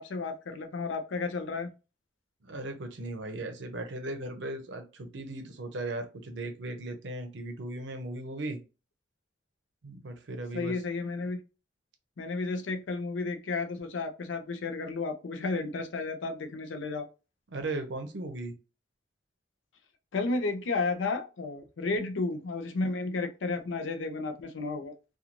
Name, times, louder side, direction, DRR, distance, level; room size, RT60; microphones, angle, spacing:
voice 1, 0.0-1.7 10.5-11.4 12.2-17.1 20.1-24.9, left 3 dB, 85° left, 0.5 m, -32 dB
voice 2, 2.4-8.6 9.8-10.8 17.5-18.5, right 2 dB, 70° right, 0.6 m, -37 dB
2.5 x 2.3 x 2.9 m
head